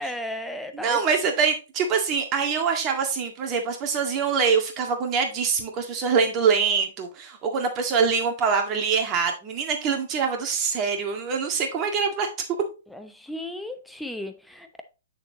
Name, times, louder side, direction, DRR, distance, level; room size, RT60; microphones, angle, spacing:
voice 1, 0.0-1.0 12.9-14.8, left 1 dB, ahead, 0.8 m, -34 dB
voice 2, 0.7-12.3, right 5 dB, 25° right, 1.8 m, -24 dB
7.8 x 6.6 x 2.9 m
figure-of-eight pair, 115°, 0 cm